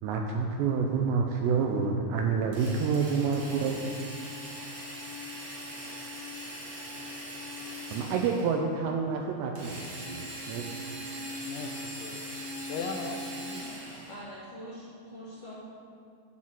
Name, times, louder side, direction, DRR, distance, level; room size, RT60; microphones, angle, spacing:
voice 1, 0.0-3.8 7.9-10.6, right 5 dB, 85° right, 2 dB, 2.5 m, -28 dB
Drill, 2.5-8.6 9.6-14.2, equal, 50° right, 2.1 m, -40 dB
voice 2, 11.4-13.7, left 4 dB, 85° left, 4 dB, 3.0 m, -39 dB
voice 3, 14.1-15.5, equal, 60° left, -9 dB, 1.7 m, -44 dB
11.0 x 4.3 x 7.5 m, 2.3 s
omnidirectional pair, 5.4 m